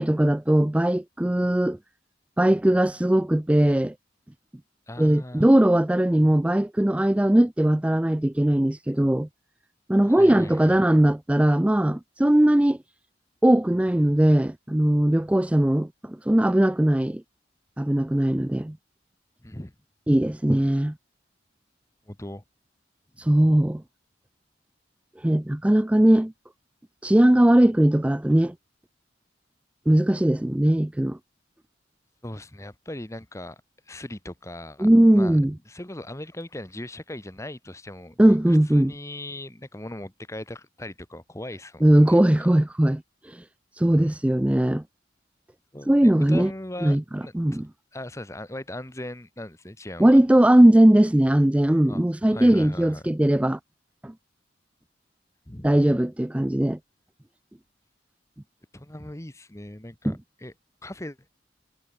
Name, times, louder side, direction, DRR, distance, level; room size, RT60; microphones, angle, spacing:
voice 1, 0.0-1.8 2.4-3.9 5.0-9.3 9.9-12.8 13.4-17.2 17.8-18.8 20.1-20.9 23.2-23.8 25.2-26.3 27.0-28.5 29.9-31.2 34.8-35.5 38.2-38.9 41.8-43.4 43.7-44.8 45.9-46.5 46.8-47.7 50.0-53.6 54.0-54.1 55.6-56.8 60.1-60.2, right 1 dB, 5° right, 0.3 m, -19 dB
voice 2, 4.9-5.5 10.1-10.8 19.4-19.7 22.1-22.4 32.2-33.6 33.9-34.9 35.1-38.4 38.7-42.2 43.9-44.1 45.7-47.6 47.9-50.2 51.9-52.0 52.3-53.0 55.5-55.8 58.7-60.5 60.8-61.3, left 1 dB, 15° left, 1.5 m, -39 dB
head